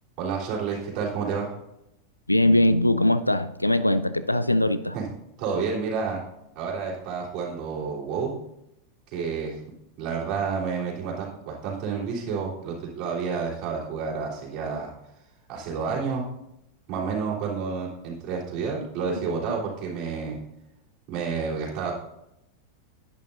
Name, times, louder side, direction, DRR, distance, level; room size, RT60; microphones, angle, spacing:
voice 1, 0.2-1.5 4.9-5.0 5.4-6.2 6.5-8.3 9.1-9.6 10.0-14.9 15.5-16.2 16.9-20.4 21.1-22.0, right 5 dB, 40° right, -5 dB, 3.4 m, -30 dB
voice 2, 2.3-5.0 19.2-19.3, left 1 dB, 90° left, 13 dB, 0.4 m, -21 dB
11.0 x 9.1 x 2.6 m, 0.85 s
figure-of-eight pair, 90°, 0 cm